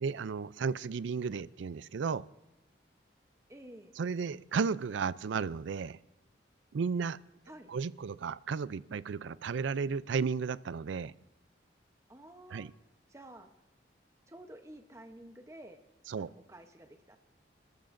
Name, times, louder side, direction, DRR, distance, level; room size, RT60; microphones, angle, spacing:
voice 1, 0.0-2.2 4.0-6.0 6.7-7.2 7.7-11.1 12.5-12.7 16.1-16.3, right 5 dB, 80° right, 18 dB, 0.4 m, -33 dB
voice 2, 3.5-3.9 7.5-7.7 12.1-12.7 13.1-13.5 14.3-15.8 16.2-17.2, right 1 dB, 15° right, 6 dB, 0.8 m, -51 dB
29.5 x 13.5 x 2.6 m, 0.90 s
head